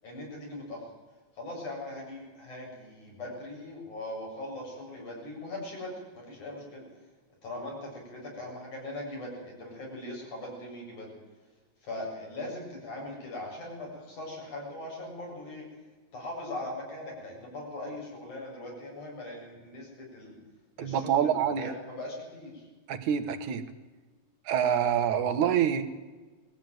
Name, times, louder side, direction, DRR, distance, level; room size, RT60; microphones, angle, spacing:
voice 1, 0.0-0.8 1.4-6.8 7.4-11.1 11.8-15.7 16.1-20.4 20.8-22.7, left 1 dB, 80° left, -2 dB, 9.1 m, -40 dB
voice 2, 20.8-21.7 22.9-23.6 24.5-25.9, right 8 dB, 85° right, 8 dB, 2.8 m, -26 dB
21.5 x 16.0 x 9.3 m, 1.3 s
omnidirectional pair, 3.4 m